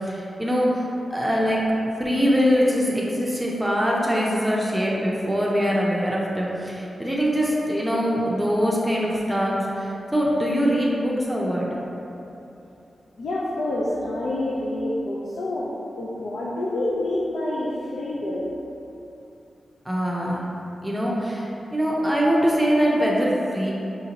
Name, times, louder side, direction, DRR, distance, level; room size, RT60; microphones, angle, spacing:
voice 1, 0.0-11.7 19.9-20.4 20.8-23.7, equal, 10° right, -4 dB, 0.5 m, -23 dB
voice 2, 13.2-18.5, left 1 dB, 85° left, -6 dB, 0.4 m, -27 dB
4.9 x 2.6 x 2.9 m, 2.9 s
wide cardioid pair, 95°, 0 cm